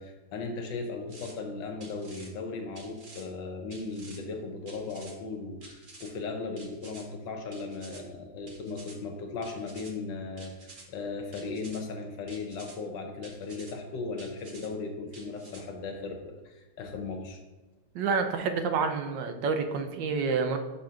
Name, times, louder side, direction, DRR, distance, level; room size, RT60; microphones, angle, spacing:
voice 1, 0.0-17.4, left 3 dB, 75° left, 4 dB, 1.5 m, -37 dB
sound 1, 1.1-1.3 1.8-2.3 2.7-3.3 3.7-4.2 4.7-5.2 5.6-6.1 6.6-7.0 7.5-8.0 8.5-9.0 9.4-9.9 10.4-10.9 11.3-11.8 12.3-12.8 13.2-13.7 14.2-14.7 15.1-15.6, right 2 dB, 35° right, 0.9 m, -50 dB
voice 2, 17.9-20.6, right 5 dB, 75° right, 7 dB, 1.4 m, -28 dB
6.1 x 4.3 x 5.7 m, 1.1 s
omnidirectional pair, 2.0 m